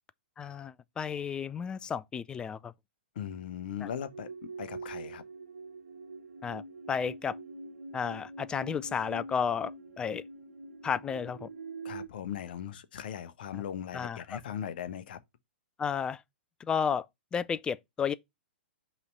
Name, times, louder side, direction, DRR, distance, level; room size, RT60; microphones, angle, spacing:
voice 1, 0.4-2.7 3.8-3.9 6.4-7.4 7.9-9.7 10.0-10.2 10.8-11.5 13.5-13.6 13.9-14.4 15.8-16.2 16.6-17.1 17.3-18.1, left 7 dB, 15° left, 0.3 m, -32 dB
voice 2, 3.2-4.3 4.6-5.2 11.8-15.2, left 9 dB, 55° left, 0.8 m, -39 dB
sound 1, 3.9-12.1, right 3 dB, 80° right, 1.6 m, -44 dB
5.6 x 3.2 x 5.3 m
figure-of-eight pair, 110°, 6 cm